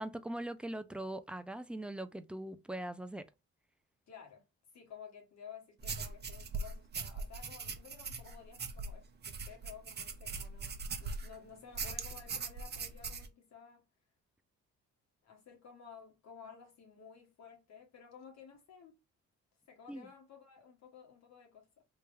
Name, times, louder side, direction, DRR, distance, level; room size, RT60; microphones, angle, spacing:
voice 1, 0.0-3.3 19.9-20.1, right 1 dB, 5° right, 0.4 m, -41 dB
voice 2, 4.1-4.4 4.7-13.8 15.2-19.0 19.7-21.8, left 7 dB, 60° left, 1.4 m, -54 dB
sound 1, 5.8-11.4 11.7-13.3, right 4 dB, 35° right, 0.8 m, -41 dB
3.4 x 2.7 x 3.4 m
cardioid pair, 90°, 30 cm